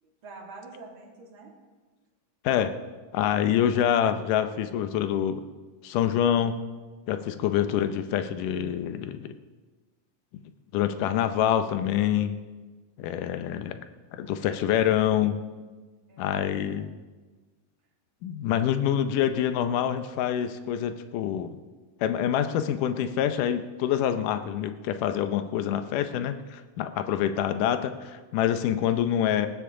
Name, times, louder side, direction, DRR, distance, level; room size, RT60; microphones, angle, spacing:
voice 1, 0.0-1.6 16.1-16.6, right 3 dB, 40° right, -1 dB, 3.0 m, -46 dB
voice 2, 3.1-5.4 5.8-6.6 7.1-9.4 10.7-12.3 13.0-13.8 14.2-15.4 16.2-16.9 18.2-21.6 22.0-29.5, left 10 dB, 85° left, 9 dB, 2.4 m, -26 dB
19.0 x 16.5 x 3.8 m, 1.3 s
omnidirectional pair, 3.7 m